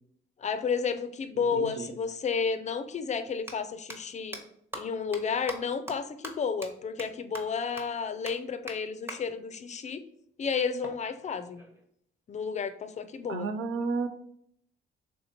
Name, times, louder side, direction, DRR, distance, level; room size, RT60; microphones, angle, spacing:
voice 1, 0.4-4.4 4.7-10.0 10.4-11.6 12.3-13.5, left 5 dB, 35° left, 11 dB, 0.4 m, -32 dB
voice 2, 1.5-1.9 13.3-14.1, right 4 dB, 75° right, 9 dB, 0.5 m, -32 dB
sound 1, 3.4-3.5 3.9-4.0 4.3-4.4 4.7-4.8 5.1-5.2 5.5-5.6 5.9-6.0 6.2-6.3 6.6-6.7 7.0-7.1 7.3-7.4 7.8-7.9 8.3-8.4 8.7-8.8 9.1-9.2 10.8-11.8, right 1 dB, 10° right, 0.8 m, -40 dB
3.3 x 2.8 x 4.3 m, 0.69 s
cardioid pair, 90°, 20 cm